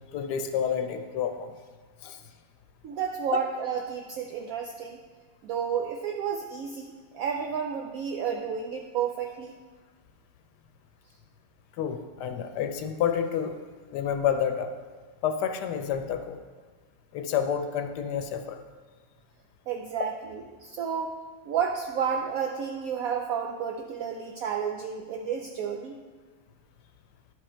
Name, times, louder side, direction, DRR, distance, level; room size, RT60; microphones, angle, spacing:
voice 1, 0.1-1.6 2.0-2.2 3.3-3.4 11.8-13.5 13.9-14.7 15.2-16.4 17.1-18.6, left 8 dB, 80° left, 7 dB, 1.2 m, -29 dB
voice 2, 2.8-5.0 5.4-9.6 19.7-21.1 21.5-26.0, right 7 dB, 70° right, 3 dB, 0.9 m, -31 dB
11.0 x 4.9 x 4.4 m, 1.4 s
omnidirectional pair, 1.8 m